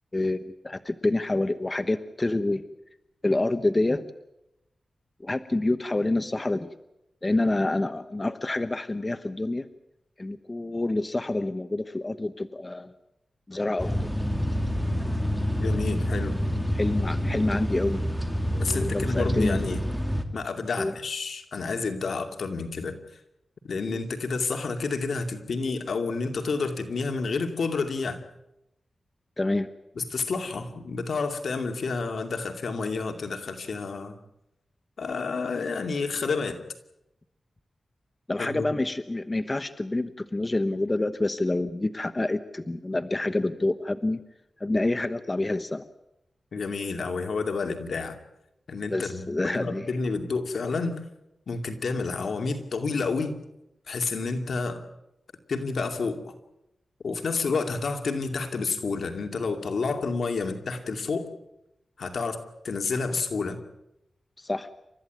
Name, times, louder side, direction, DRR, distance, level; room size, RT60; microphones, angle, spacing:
voice 1, 0.1-2.6 3.2-4.1 5.2-6.7 7.2-9.7 10.2-12.9 13.5-14.0 15.0-15.2 16.7-18.0 18.7-19.6 20.8-20.9 29.4-29.7 38.3-44.2 44.6-45.8 48.9-49.9 64.4-64.7, left 2 dB, 30° left, 11 dB, 1.1 m, -27 dB
sound 1, 13.8-20.2, equal, ahead, 2.5 m, -27 dB
voice 2, 15.6-16.3 18.6-19.8 20.3-23.0 23.6-28.2 30.0-34.1 35.0-36.6 38.4-38.7 46.5-48.2 48.7-51.0 51.5-53.4 53.9-54.8 55.5-56.3 57.0-61.3 62.0-63.6, left 4 dB, 75° left, 6 dB, 2.5 m, -30 dB
29.0 x 14.0 x 9.3 m, 0.87 s
cardioid pair, 70°, 0 cm